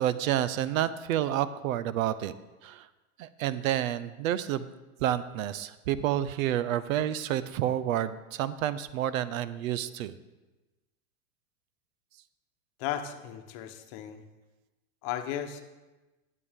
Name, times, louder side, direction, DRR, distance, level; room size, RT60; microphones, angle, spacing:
voice 1, 0.0-2.3 2.6-2.9 3.2-4.6 5.0-10.1, right 11 dB, 70° right, 16 dB, 0.6 m, -29 dB
voice 2, 12.8-14.2 15.0-15.6, left 11 dB, 50° left, 7 dB, 1.0 m, -35 dB
11.0 x 8.4 x 3.6 m, 1.1 s
supercardioid pair, 125°, 42 cm